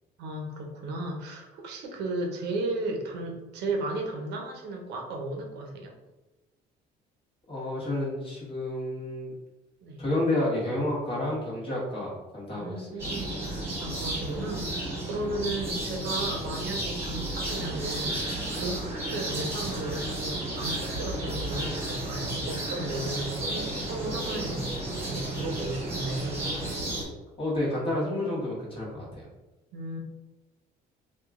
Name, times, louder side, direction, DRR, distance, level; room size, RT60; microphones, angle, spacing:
voice 1, 0.2-5.9 9.8-10.0 12.5-26.5 29.7-30.0, right 2 dB, 80° right, 2 dB, 0.7 m, -35 dB
voice 2, 7.5-9.3 10.0-13.0 27.4-29.2, left 1 dB, 30° left, -4 dB, 1.3 m, -30 dB
sound 1, 13.0-27.0, right 1 dB, 15° right, 1.3 m, -33 dB
sound 2, 17.4-26.8, right 3 dB, 40° right, 0.6 m, -46 dB
2.9 x 2.3 x 3.6 m, 1.1 s
cardioid pair, 110°, 17 cm